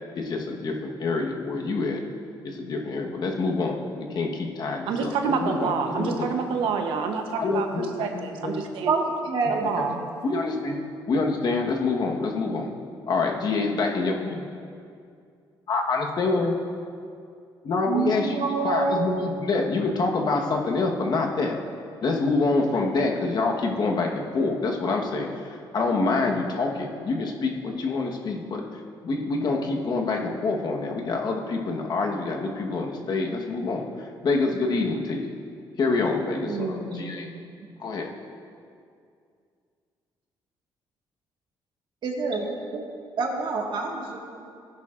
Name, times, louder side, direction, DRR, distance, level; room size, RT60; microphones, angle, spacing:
voice 1, 0.1-2.0 2.4-5.1 5.4-6.3 7.4-8.5 9.7-9.8 10.2-12.7 13.1-14.4 15.7-16.6 17.6-18.4 18.6-21.6 22.0-35.3 35.8-37.3 37.8-38.1, left 3 dB, 55° left, 1 dB, 1.3 m, -26 dB
voice 2, 4.9-9.0 9.5-10.0, right 5 dB, 90° right, 4 dB, 0.9 m, -28 dB
voice 3, 8.8-10.0 17.9-19.0 36.4-37.1 42.0-42.8 43.2-44.2, right 4 dB, 60° right, 0 dB, 1.7 m, -27 dB
15.5 x 10.0 x 2.5 m, 2.3 s
cardioid pair, 95°, 9 cm